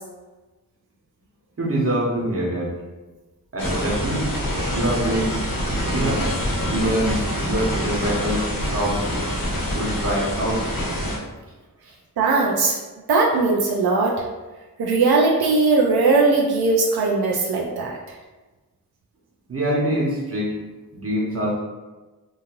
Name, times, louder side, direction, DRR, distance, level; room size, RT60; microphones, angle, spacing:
voice 1, 1.6-2.8 3.5-4.3 4.7-5.4 5.9-6.3 6.7-9.1 9.7-10.6 11.9-12.0 19.5-20.5 20.9-21.5, right 1 dB, 40° right, -3 dB, 0.9 m, -24 dB
sound 1, 3.6-11.2, equal, 70° left, 0.9 m, -25 dB
voice 2, 12.2-12.8 13.1-14.2 14.8-18.0, right 3 dB, 85° right, -1 dB, 0.5 m, -19 dB
3.0 x 2.6 x 2.5 m, 1.2 s
wide cardioid pair, 60°, 37 cm